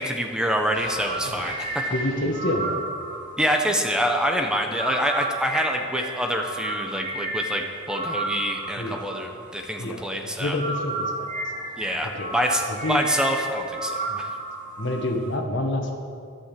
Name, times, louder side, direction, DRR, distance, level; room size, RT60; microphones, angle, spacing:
voice 1, 0.0-1.9 3.4-10.6 11.8-14.3, equal, 5° right, 3 dB, 1.0 m, -26 dB
sound 1, 0.7-10.0 10.3-15.4, right 2 dB, 40° right, 3.0 m, -32 dB
voice 2, 1.9-2.8 8.8-9.0 9.8-10.0 10.4-11.3 12.1-12.3 12.6-13.1 14.1-14.2 14.8-15.9, left 1 dB, 65° left, 3 dB, 1.9 m, -28 dB
12.5 x 11.5 x 7.6 m, 2.2 s
head